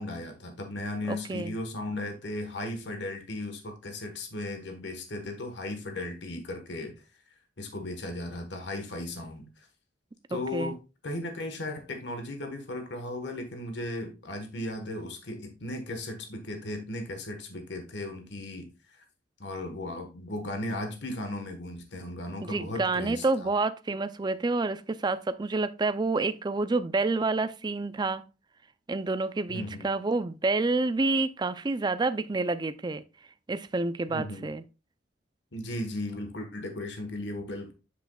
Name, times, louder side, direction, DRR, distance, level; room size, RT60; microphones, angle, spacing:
voice 1, 0.0-6.9 7.6-9.7 10.3-10.8 11.0-19.0 19.4-23.5 29.5-29.9 34.1-34.5 35.5-37.7, left 1 dB, 70° left, 1.3 m, -36 dB
voice 2, 1.1-1.5 10.3-10.7 22.4-28.2 28.9-33.0 33.5-34.6, right 3 dB, 25° right, 0.4 m, -28 dB
8.1 x 6.9 x 2.3 m
head